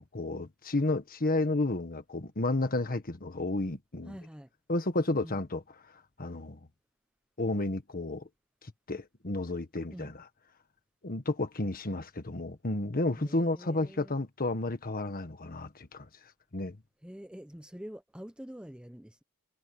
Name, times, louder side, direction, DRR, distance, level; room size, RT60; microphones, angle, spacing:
voice 1, 0.0-4.2 4.7-5.6 6.2-6.6 7.4-8.3 8.9-10.3 11.0-16.1 16.5-16.8, left 2 dB, 40° left, 1.5 m, -31 dB
voice 2, 4.0-4.5 5.2-5.4 9.9-10.1 13.2-14.2 17.0-19.2, equal, 5° right, 0.8 m, -46 dB
head